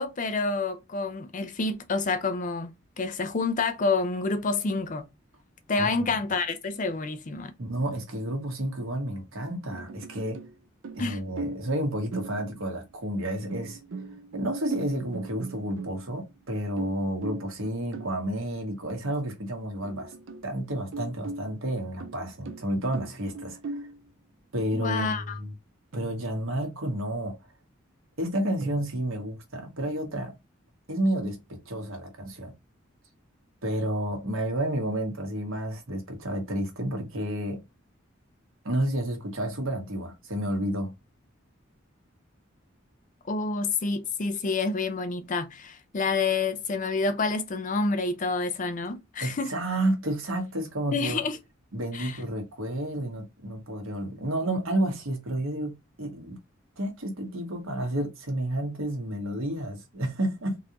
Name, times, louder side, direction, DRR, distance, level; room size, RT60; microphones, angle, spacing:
voice 1, 0.0-5.0 5.7-7.5 11.0-11.2 24.7-25.4 43.3-49.5 50.9-51.4 51.9-52.2, left 3 dB, 40° left, 0.5 m, -28 dB
voice 2, 7.6-10.4 10.9-13.8 14.3-20.1 20.4-23.8 24.5-25.5 25.9-27.3 28.2-30.3 30.9-32.5 33.6-37.6 38.6-40.9 49.2-51.2 51.7-56.4 56.8-60.6, right 1 dB, 90° right, 1.3 m, -30 dB
sound 1, 9.4-10.6 10.8-11.8 12.1-12.8 13.5-16.3 16.8-18.2 18.9-19.0 19.3-19.4 19.8-20.5 20.9-24.0 25.9-26.7 28.6-28.9, right 3 dB, 70° right, 0.5 m, -39 dB
3.9 x 2.5 x 2.9 m
head